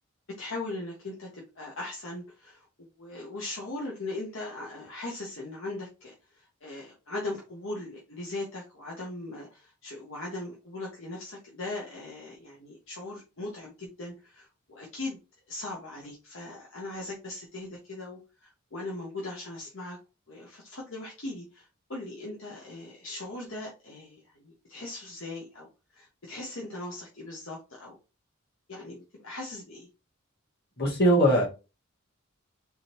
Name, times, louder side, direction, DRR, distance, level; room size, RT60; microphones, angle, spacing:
voice 1, 0.3-15.2 15.5-20.0 20.3-28.0 28.7-29.9, left 2 dB, 65° left, 1.2 m, -39 dB
voice 2, 30.8-31.5, right 1 dB, 50° left, 2.1 m, -21 dB
3.9 x 3.7 x 2.9 m
head